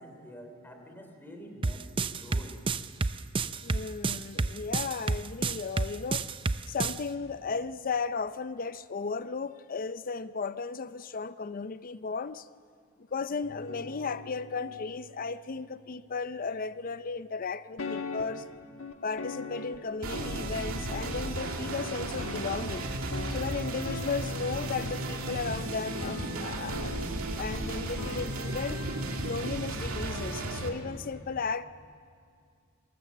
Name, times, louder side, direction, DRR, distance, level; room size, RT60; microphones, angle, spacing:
voice 1, 0.0-2.5, equal, 10° left, 3.2 m, -47 dB
sound 1, 1.6-7.0, right 3 dB, 25° right, 0.5 m, -29 dB
voice 2, 3.6-6.3 6.7-12.5 13.1-18.4 19.0-22.9 23.3-26.9 27.4-28.8 29.2-31.6, left 5 dB, 40° left, 0.5 m, -35 dB
sound 2, 13.4-17.0 17.8-28.2, left 3 dB, 70° left, 1.5 m, -42 dB
sound 3, 20.0-30.7, right 2 dB, 80° right, 2.4 m, -34 dB
26.5 x 18.5 x 7.5 m
head